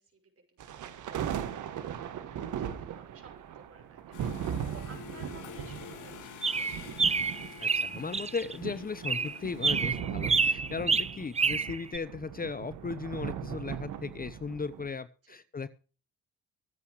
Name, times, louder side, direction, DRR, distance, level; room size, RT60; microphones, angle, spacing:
voice 1, 0.0-6.7 11.0-11.3 15.2-15.4, right 4 dB, 50° right, 4 dB, 6.0 m, -57 dB
sound 1, 0.6-14.9, right 9 dB, 70° right, 1.6 m, -39 dB
sound 2, 4.1-10.0, left 9 dB, 70° left, 2.1 m, -48 dB
sound 3, 6.4-8.6 9.0-12.0, right 4 dB, 20° right, 0.7 m, -28 dB
voice 2, 7.6-15.7, left 4 dB, 30° left, 15 dB, 0.9 m, -37 dB
24.0 x 8.3 x 3.1 m, 0.37 s
supercardioid pair, 55°, 32 cm